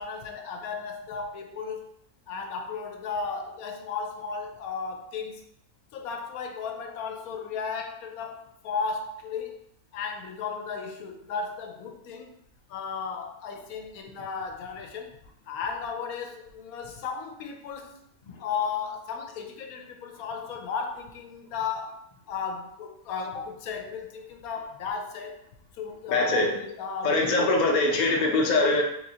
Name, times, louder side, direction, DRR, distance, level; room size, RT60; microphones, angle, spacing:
voice 1, 0.0-1.9 2.3-5.4 5.9-9.6 9.9-12.3 12.7-15.1 15.5-18.0 18.4-22.0 22.3-25.4 25.8-27.5, left 5 dB, 85° left, 4 dB, 1.0 m, -35 dB
voice 2, 26.1-26.5 27.0-28.8, left 2 dB, 65° left, 0 dB, 0.4 m, -22 dB
3.5 x 3.0 x 2.7 m, 0.75 s
omnidirectional pair, 1.5 m